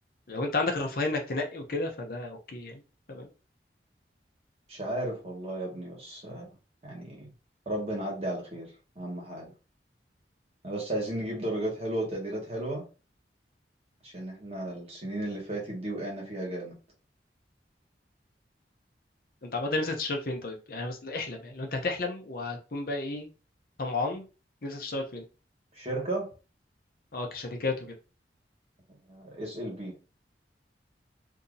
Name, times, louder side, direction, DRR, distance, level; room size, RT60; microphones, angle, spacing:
voice 1, 0.3-2.8 3.1-3.3 19.4-23.3 23.8-24.3 24.6-25.2 27.1-27.9, left 3 dB, 55° left, 3 dB, 0.7 m, -32 dB
voice 2, 4.7-6.5 6.8-7.3 7.6-9.5 10.6-12.8 14.0-16.8 25.7-26.3 29.0-29.9, right 1 dB, 35° right, -2 dB, 1.4 m, -34 dB
2.7 x 2.6 x 3.9 m, 0.33 s
head